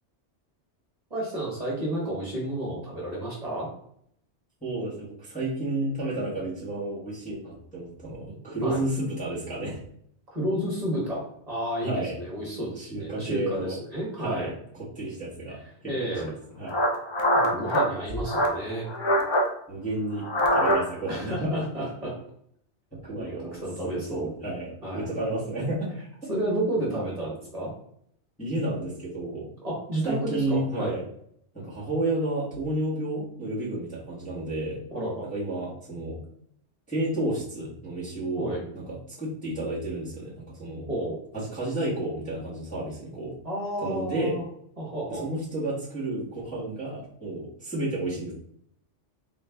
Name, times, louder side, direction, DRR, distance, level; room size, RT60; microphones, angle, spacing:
voice 1, 1.1-3.7 8.6-8.8 10.3-14.5 15.9-16.3 17.3-18.9 21.1-22.2 23.2-24.3 24.8-25.1 26.3-27.7 29.6-30.9 34.9-35.3 38.4-38.6 40.9-41.2 43.4-44.4 44.8-45.2, right 1 dB, 35° right, -5 dB, 1.2 m, -31 dB
voice 2, 4.6-9.8 11.8-12.2 12.8-13.8 14.2-16.2 16.6-16.7 19.7-21.6 23.0-25.9 28.4-29.5 30.0-31.0 31.5-34.8 35.3-36.2 36.9-40.9 41.3-43.3 43.8-44.4 45.1-48.3, right 1 dB, 5° left, -8 dB, 1.0 m, -31 dB
sound 1, 16.2-16.3 16.7-17.9 18.3-18.6 18.9-19.5 20.2-21.1, equal, 40° left, 0.4 m, -23 dB
3.9 x 2.4 x 3.3 m, 0.69 s
omnidirectional pair, 1.2 m